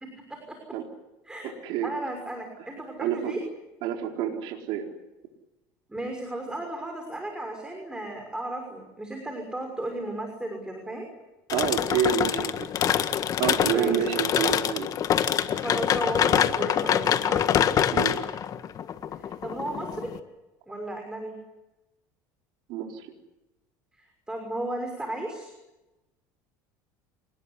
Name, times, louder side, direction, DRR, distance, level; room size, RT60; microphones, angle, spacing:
voice 1, 1.8-3.4 5.9-11.1 13.7-14.0 15.5-17.4 19.2-20.1 20.7-21.4 24.0-25.5, right 1 dB, 10° right, 3 dB, 6.1 m, -34 dB
voice 2, 3.0-3.4 3.8-4.8 11.5-12.5 13.4-14.9 17.9-18.2 22.7-23.1, right 8 dB, 70° right, 2 dB, 4.3 m, -28 dB
sound 1, 11.5-20.2, left 9 dB, 40° left, 1.6 m, -25 dB
27.5 x 20.0 x 9.8 m, 1.0 s
supercardioid pair, 110°, 9 cm